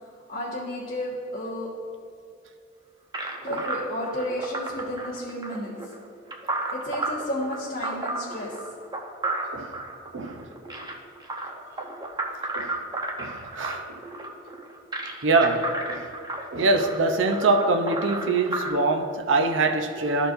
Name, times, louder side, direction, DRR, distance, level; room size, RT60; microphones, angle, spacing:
voice 1, 0.0-1.7 3.4-6.0 6.7-8.6, equal, 45° left, -8 dB, 1.4 m, -32 dB
sound 1, 3.1-18.7, right 2 dB, 20° right, 0.7 m, -33 dB
voice 2, 10.1-10.5 12.5-12.8 13.2-14.0 15.2-16.1 16.5-20.3, right 3 dB, 75° right, 5 dB, 0.6 m, -24 dB
13.5 x 4.5 x 2.6 m, 2.4 s
head